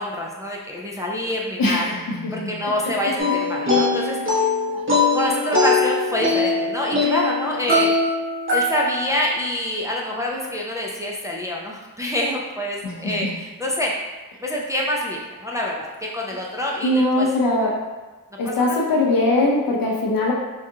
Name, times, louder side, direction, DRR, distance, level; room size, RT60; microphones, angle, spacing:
voice 1, 0.0-1.9 2.3-4.5 5.1-7.9 8.5-13.9 14.4-17.3 18.4-18.8, left 1 dB, 10° right, -3 dB, 0.4 m, -26 dB
voice 2, 1.6-2.5 4.7-4.8 12.8-13.3 16.8-17.8 18.4-20.3, left 2 dB, 85° left, -1 dB, 0.6 m, -21 dB
sound 1, 3.2-9.1, left 2 dB, 35° right, 1.1 m, -21 dB
4.5 x 2.4 x 2.7 m, 1.2 s
wide cardioid pair, 90°, 34 cm